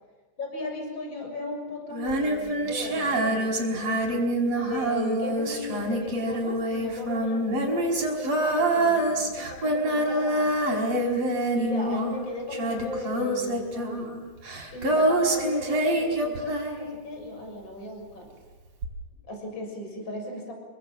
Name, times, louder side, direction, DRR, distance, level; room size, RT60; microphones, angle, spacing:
voice 1, 0.4-4.2 4.6-10.9 11.5-14.2 14.7-18.3 19.3-20.5, left 1 dB, 25° left, 3 dB, 7.2 m, -37 dB
Female singing, 1.9-17.3 18.8-18.9, right 1 dB, 35° right, 5.6 m, -26 dB
27.5 x 24.5 x 7.5 m, 1.4 s
omnidirectional pair, 5.1 m